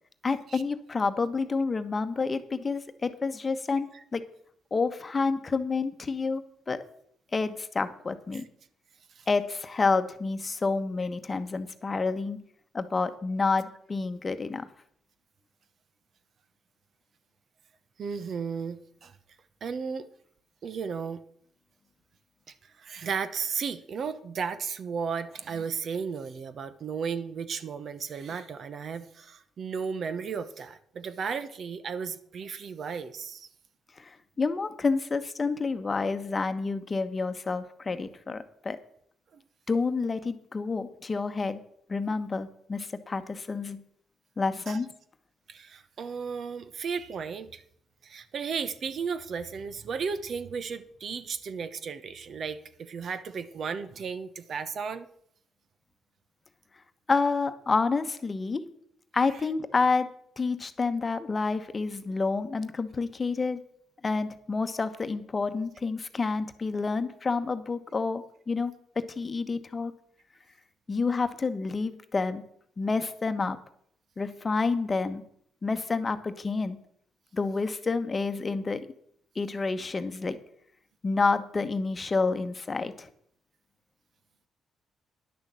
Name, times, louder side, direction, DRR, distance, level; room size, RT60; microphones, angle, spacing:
voice 1, 0.2-4.2 4.7-6.4 6.7-6.8 7.3-8.4 9.3-12.4 12.7-14.7 34.0-38.8 39.7-41.6 41.9-43.8 44.4-44.9 57.1-58.6 59.1-60.1 60.4-63.6 64.0-68.7 69.2-69.9 70.9-72.4 72.8-73.6 74.2-75.2 75.6-76.8 77.3-78.9 79.3-80.4 81.0-83.1, left 4 dB, 30° left, 10 dB, 1.0 m, -29 dB
voice 2, 18.0-19.2 19.6-20.1 20.6-21.2 22.6-33.5 39.3-39.4 44.7-44.8 45.5-47.6 48.0-55.1, right 6 dB, 55° right, 13 dB, 0.9 m, -34 dB
10.5 x 6.6 x 7.5 m, 0.66 s
cardioid pair, 90°, 0 cm